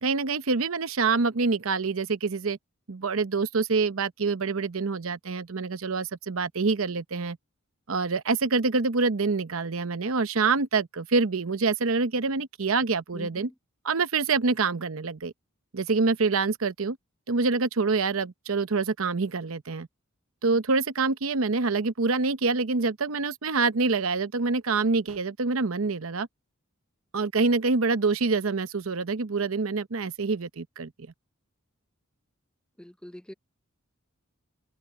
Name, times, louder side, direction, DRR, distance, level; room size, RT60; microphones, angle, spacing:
voice 1, 0.0-2.6 2.9-7.4 7.9-13.5 13.8-15.3 15.7-17.0 17.3-19.9 20.4-26.3 27.1-30.9, right 4 dB, 70° right, 0.8 m, -26 dB
voice 2, 32.8-33.3, equal, 5° left, 0.8 m, -43 dB
head